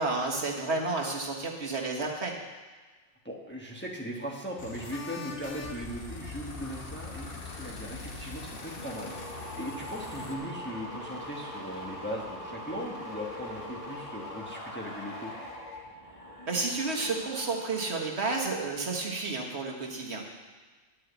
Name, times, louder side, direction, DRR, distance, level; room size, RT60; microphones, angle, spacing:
voice 1, 0.0-2.3 16.5-20.2, right 3 dB, 60° right, 0 dB, 1.6 m, -31 dB
voice 2, 3.2-9.2 9.5-15.3, equal, 10° left, -1 dB, 1.1 m, -39 dB
sound 1, 4.6-10.3, left 3 dB, 50° left, 1.3 m, -43 dB
sound 2, 5.4-18.1 18.4-18.8, left 1 dB, 30° left, 1.3 m, -43 dB
10.0 x 6.1 x 7.9 m, 1.3 s
omnidirectional pair, 1.3 m